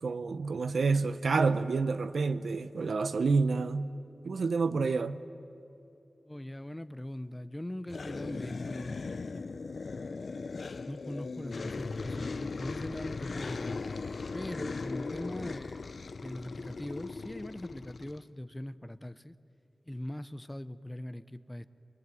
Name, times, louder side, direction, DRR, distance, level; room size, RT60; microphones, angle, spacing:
voice 1, 0.0-3.9 4.2-5.2, right 4 dB, 85° right, 0.7 m, -28 dB
voice 2, 6.2-9.7 10.9-13.8 14.3-19.3 19.9-21.7, left 1 dB, 10° left, 0.7 m, -41 dB
sound 1, 7.9-18.2, left 4 dB, 65° left, 0.6 m, -38 dB
24.5 x 22.0 x 9.2 m
wide cardioid pair, 110°, 0 cm